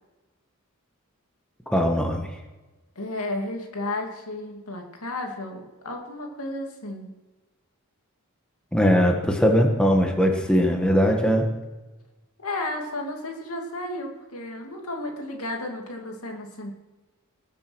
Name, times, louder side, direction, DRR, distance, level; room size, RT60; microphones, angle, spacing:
voice 1, 1.7-2.3 8.7-11.5, equal, 5° left, 2 dB, 1.5 m, -20 dB
voice 2, 3.0-7.1 12.4-16.7, left 2 dB, 90° left, 2 dB, 2.4 m, -33 dB
20.0 x 7.5 x 6.2 m, 1.1 s
head